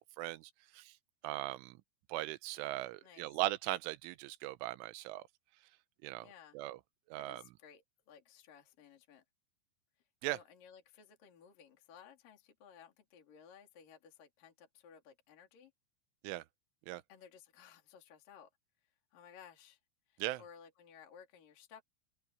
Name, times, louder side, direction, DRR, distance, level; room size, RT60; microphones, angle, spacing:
voice 1, 0.2-0.9 1.2-1.8 2.1-5.2 6.0-6.3 6.5-6.8 7.1-7.4 10.2-10.4 16.2-16.4 16.9-17.0 20.2-20.4, right 17 dB, 85° right, 3.3 m, -39 dB
voice 2, 3.0-3.3 6.2-6.6 7.2-9.2 10.3-15.7 17.1-18.5 19.1-19.8 20.1-21.8, left 7 dB, 50° left, 4.8 m, -58 dB
open air
omnidirectional pair, 5.6 m